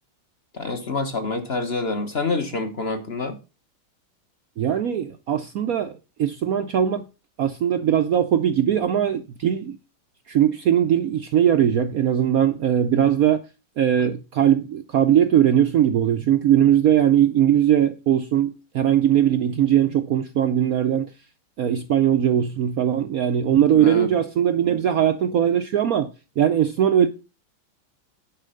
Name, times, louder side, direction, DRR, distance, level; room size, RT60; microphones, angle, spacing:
voice 1, 0.5-3.4 23.7-24.1, left 3 dB, 35° left, 1.1 m, -27 dB
voice 2, 4.6-7.0 7.4-9.8 10.3-13.4 13.8-21.1 21.6-26.1 26.4-27.1, right 10 dB, 70° right, 0.8 m, -20 dB
10.0 x 4.8 x 6.4 m
omnidirectional pair, 2.3 m